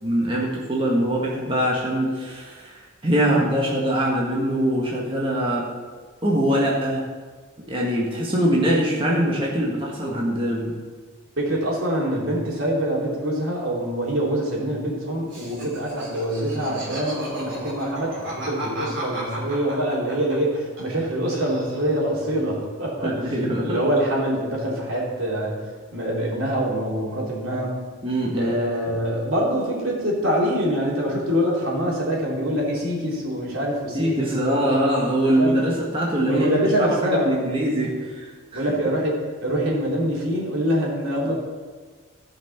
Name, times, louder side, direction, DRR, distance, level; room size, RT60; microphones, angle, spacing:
voice 1, 0.0-5.6 6.2-7.0 7.7-10.7 23.0-23.8 28.0-28.5 33.9-38.6, right 1 dB, 25° right, -4 dB, 1.6 m, -23 dB
voice 2, 11.4-27.7 28.3-34.6 35.4-35.5 36.2-37.4 38.5-41.3, equal, 80° right, -4 dB, 3.2 m, -25 dB
Laughter, 15.3-21.1 21.3-22.1, right 1 dB, 60° right, 3.3 m, -35 dB
14.0 x 5.9 x 5.7 m, 1.5 s
head